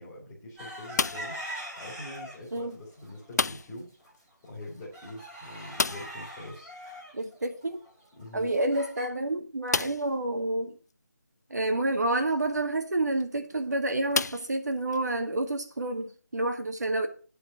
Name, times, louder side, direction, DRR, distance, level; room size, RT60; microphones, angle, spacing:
voice 1, 0.0-1.4 1.8-3.9 4.4-6.7 8.2-8.5, left 1 dB, 10° left, 2.2 m, -44 dB
sound 1, 0.6-2.6 3.0-3.6 4.0-4.1 4.5-9.1, equal, 5° right, 1.5 m, -42 dB
sound 2, 0.9-1.5 3.3-3.9 4.1-4.2 4.6-4.7 5.7-6.3 8.1-8.2 8.8-8.9 9.7-10.2 10.9-11.0 13.0-13.2 14.1-15.0, left 4 dB, 65° left, 0.4 m, -30 dB
voice 2, 7.1-7.8 8.3-10.8 11.5-17.1, right 2 dB, 70° right, 2.0 m, -29 dB
9.8 x 4.8 x 7.5 m
figure-of-eight pair, 175°, 10 cm